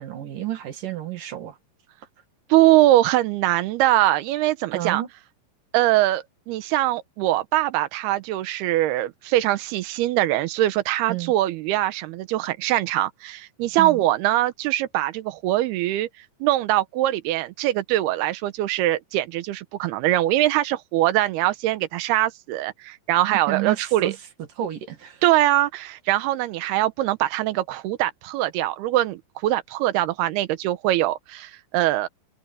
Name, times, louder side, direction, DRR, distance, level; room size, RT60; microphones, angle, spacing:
voice 1, 0.0-1.6 4.7-5.1 11.1-11.3 13.8-14.0 23.5-24.2 24.6-25.2, right 13 dB, 60° right, 3.4 m, -30 dB
voice 2, 2.5-5.0 5.7-16.1 16.4-24.1 25.2-32.1, right 15 dB, 85° right, 3.0 m, -22 dB
omnidirectional pair, 4.5 m